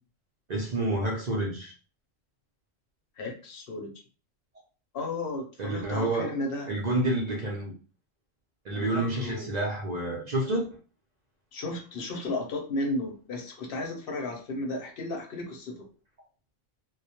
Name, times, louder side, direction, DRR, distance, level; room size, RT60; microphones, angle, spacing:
voice 1, 0.5-1.7 5.6-6.3 6.7-7.7 8.6-10.6, right 2 dB, 55° right, -2 dB, 0.5 m, -29 dB
voice 2, 3.2-3.9 4.9-6.7 8.7-9.5 11.5-15.9, left 2 dB, 55° left, 1 dB, 0.8 m, -34 dB
2.2 x 2.0 x 2.8 m, 0.37 s
omnidirectional pair, 1.3 m